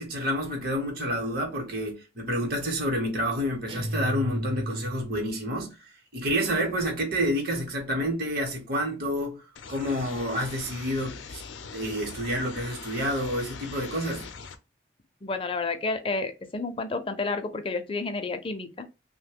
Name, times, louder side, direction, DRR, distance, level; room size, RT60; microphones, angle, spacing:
voice 1, 0.0-5.8 6.1-11.4 11.7-14.3, equal, 55° right, 0.9 m, -29 dB
sound 1, 3.7-5.4, equal, 30° right, 0.5 m, -33 dB
sound 2, 9.6-14.6, left 5 dB, 85° left, 0.5 m, -42 dB
voice 2, 15.2-18.9, left 3 dB, 30° left, 0.5 m, -30 dB
3.0 x 2.1 x 3.4 m
head